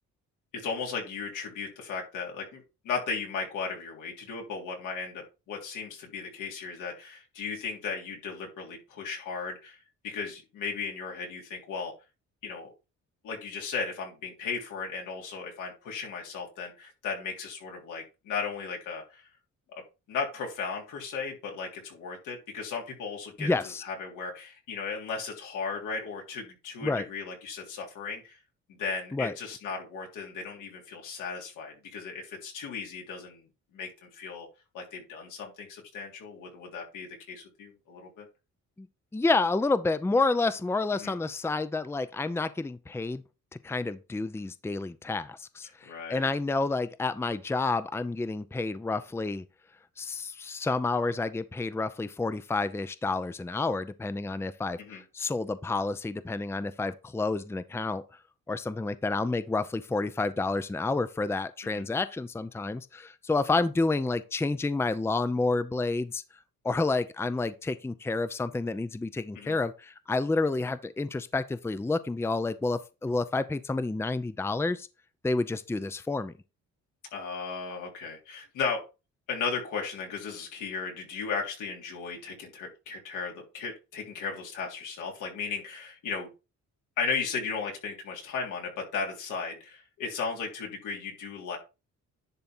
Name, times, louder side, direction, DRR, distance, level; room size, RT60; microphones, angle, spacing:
voice 1, 0.5-9.8 10.0-11.9 12.4-12.7 13.2-19.3 20.1-23.5 23.8-28.4 28.7-33.5 33.7-34.5 34.7-38.3 41.0-41.1 45.8-46.3 54.8-55.0 61.7-61.8 69.3-69.6 77.1-78.8 79.3-86.3 87.0-91.6, left 5 dB, 85° left, 3.3 m, -36 dB
voice 2, 23.4-23.8 26.8-27.1 29.1-29.3 38.8-38.9 39.1-43.2 43.6-49.4 50.0-58.0 58.5-66.2 66.6-74.9 75.2-76.3, left 3 dB, 10° left, 0.6 m, -29 dB
10.5 x 3.8 x 4.4 m
cardioid pair, 90°, 30 cm